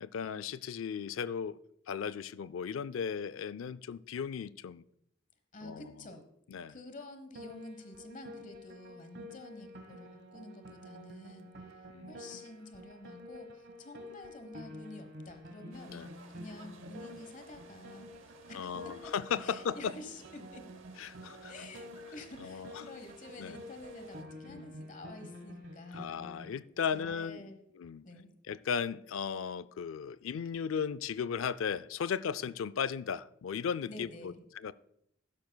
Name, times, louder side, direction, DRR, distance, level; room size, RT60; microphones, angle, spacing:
voice 1, 0.0-1.6 1.9-4.8 5.6-5.9 6.5-6.7 11.9-12.2 15.9-16.1 18.5-19.9 21.0-21.5 22.4-22.7 23.4-23.6 24.5-24.8 25.9-27.4 27.8-28.1 28.5-34.3 34.6-34.7, left 7 dB, 80° left, 0.4 m, -36 dB
voice 2, 5.5-6.2 6.7-11.5 12.1-16.0 16.3-19.1 19.4-20.7 21.5-26.1 26.8-27.6 28.0-28.3 33.9-34.4, left 2 dB, 40° left, 1.1 m, -49 dB
Piano, 7.4-26.5, left 1 dB, 55° right, 1.2 m, -49 dB
sound 1, 15.7-24.2, right 4 dB, 70° right, 0.9 m, -57 dB
12.0 x 10.5 x 2.3 m
head